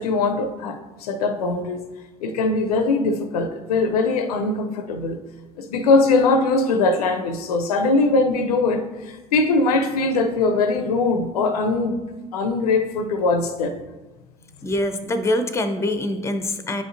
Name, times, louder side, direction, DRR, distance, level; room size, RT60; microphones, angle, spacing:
voice 1, 0.0-1.8 2.2-5.2 5.6-12.0 12.3-13.8, left 3 dB, 75° left, 8 dB, 0.6 m, -21 dB
voice 2, 14.6-16.8, left 1 dB, 15° left, 9 dB, 0.6 m, -24 dB
9.4 x 5.1 x 2.6 m, 1.2 s
hypercardioid pair, 65°, 20 cm